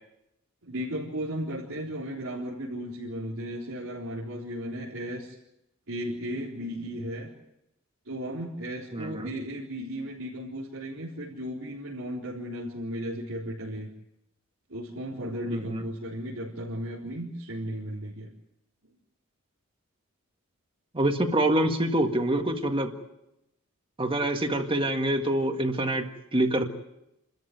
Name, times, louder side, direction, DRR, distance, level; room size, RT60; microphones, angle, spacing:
voice 1, 0.6-5.3 5.9-7.3 8.1-13.9 14.7-18.3, equal, 90° right, -6 dB, 4.2 m, -35 dB
voice 2, 8.9-9.3 15.5-15.8 20.9-22.9 24.0-26.6, right 1 dB, 25° right, 5 dB, 1.8 m, -26 dB
29.5 x 14.0 x 9.4 m, 0.87 s
head